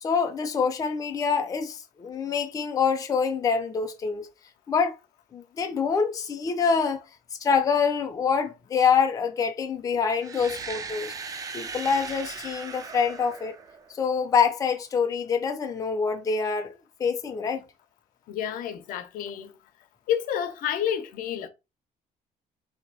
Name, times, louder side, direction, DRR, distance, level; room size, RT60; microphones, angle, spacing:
voice 1, 0.0-4.3 4.7-4.9 5.3-7.0 7.4-11.1 11.5-13.6 13.9-16.7 17.0-17.6, left 6 dB, 25° left, 0.5 m, -25 dB
sound 1, 10.2-14.1, right 5 dB, 25° right, 0.4 m, -38 dB
voice 2, 18.3-19.5 20.1-21.5, left 9 dB, 75° left, 0.7 m, -29 dB
3.3 x 2.9 x 4.7 m
cardioid pair, 175°, 14 cm